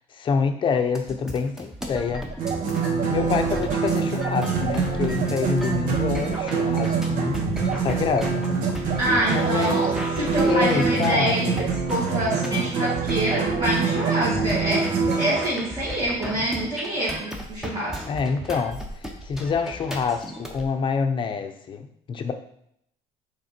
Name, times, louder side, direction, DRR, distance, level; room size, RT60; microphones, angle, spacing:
voice 1, 0.1-2.3 3.1-7.4 7.8-8.5 9.3-9.9 10.4-11.6 18.1-22.3, left 5 dB, 35° left, 7 dB, 0.7 m, -26 dB
sound 1, 1.0-20.6, equal, 5° right, 0.9 m, -36 dB
sound 2, 2.3-11.7 12.1-15.2, right 9 dB, 55° right, 0.4 m, -34 dB
sound 3, 2.4-15.5, right 5 dB, 70° right, 1.3 m, -25 dB
voice 2, 9.0-9.9 10.2-14.9 15.2-18.0, right 1 dB, 30° right, -10 dB, 2.2 m, -26 dB
6.3 x 3.7 x 4.4 m, 0.71 s
cardioid pair, 140°, 14 cm